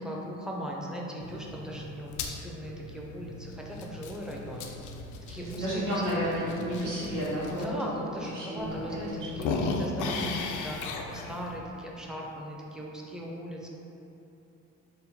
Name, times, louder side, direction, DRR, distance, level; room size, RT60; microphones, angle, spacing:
voice 1, 0.0-4.6 5.3-6.2 7.6-13.7, equal, ahead, -3 dB, 0.5 m, -39 dB
sound 1, 1.2-7.6 8.2-8.3 8.6-11.6, left 3 dB, 80° left, 0.5 m, -37 dB
voice 2, 5.3-8.1 8.3-9.3 10.0-10.3, equal, 80° right, -9 dB, 1.5 m, -32 dB
3.7 x 2.2 x 4.1 m, 3.0 s
cardioid pair, 90°, 30 cm